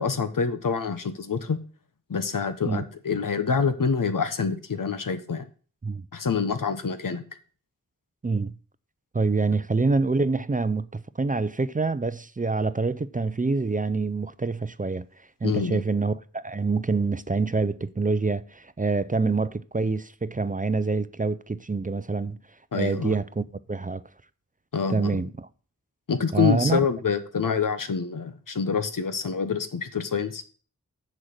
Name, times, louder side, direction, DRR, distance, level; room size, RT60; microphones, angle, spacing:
voice 1, 0.0-1.6 2.1-5.5 6.1-7.2 15.4-15.8 22.7-23.2 24.7-25.2 26.1-30.4, left 5 dB, 80° left, 1.0 m, -26 dB
voice 2, 8.2-8.6 9.1-15.1 15.4-22.4 22.7-24.0 24.9-25.5 26.3-26.8, right 3 dB, 25° right, 0.5 m, -26 dB
7.5 x 6.3 x 6.5 m
wide cardioid pair, 45°, 32 cm